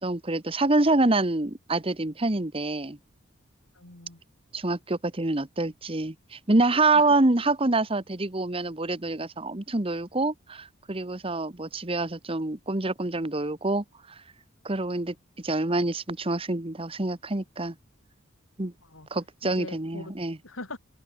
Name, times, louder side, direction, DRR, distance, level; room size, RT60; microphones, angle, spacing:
voice 1, 0.0-3.0 4.5-13.8 14.6-15.1 15.4-17.7 18.6-18.7 19.1-20.4, right 2 dB, 30° right, 1.3 m, -26 dB
voice 2, 3.7-4.2 6.9-7.0 18.8-19.1 19.4-20.8, left 2 dB, 85° left, 3.9 m, -42 dB
open air
head